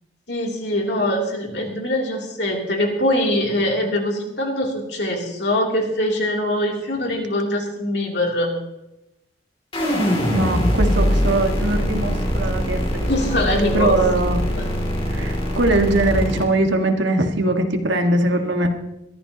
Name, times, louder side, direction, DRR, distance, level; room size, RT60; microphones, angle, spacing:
voice 1, 0.3-8.5 13.1-14.0 14.6-14.7, left 1 dB, 60° left, 0 dB, 3.2 m, -23 dB
sound 1, 9.7-16.4, equal, 30° left, 2.8 m, -22 dB
voice 2, 10.3-13.1 13.7-14.4 15.1-18.7, right 2 dB, 75° right, 4 dB, 1.8 m, -21 dB
22.0 x 14.0 x 3.0 m, 0.90 s
head